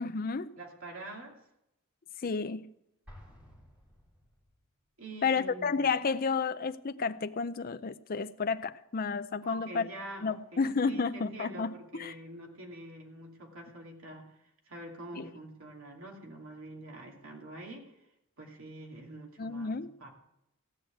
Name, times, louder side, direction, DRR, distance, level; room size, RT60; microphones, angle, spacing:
voice 1, 0.0-0.5 2.2-2.7 5.2-9.9 10.2-12.2 15.1-15.3 19.4-19.9, left 5 dB, 40° left, 0.5 m, -31 dB
voice 2, 0.6-1.4 5.0-5.8 9.4-14.3 14.7-18.0 18.4-20.1, right 1 dB, 70° right, 2.7 m, -45 dB
Explosion, 3.0-4.7, left 1 dB, 5° right, 4.4 m, -54 dB
16.5 x 6.4 x 9.2 m
head